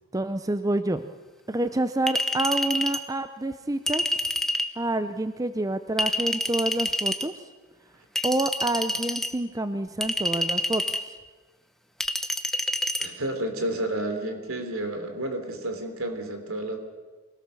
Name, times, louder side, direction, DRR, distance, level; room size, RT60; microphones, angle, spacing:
voice 1, 0.1-1.0 1.5-4.0 4.8-7.4 8.2-11.1, right 2 dB, 15° right, 10 dB, 0.6 m, -28 dB
Chink clink, 2.1-3.0 3.9-4.7 6.0-7.2 8.2-9.3 10.0-11.0 12.0-13.1, equal, ahead, 1.0 m, -27 dB
voice 2, 13.0-16.8, right 1 dB, 70° right, 6 dB, 3.4 m, -31 dB
24.5 x 18.0 x 6.9 m, 1.4 s
head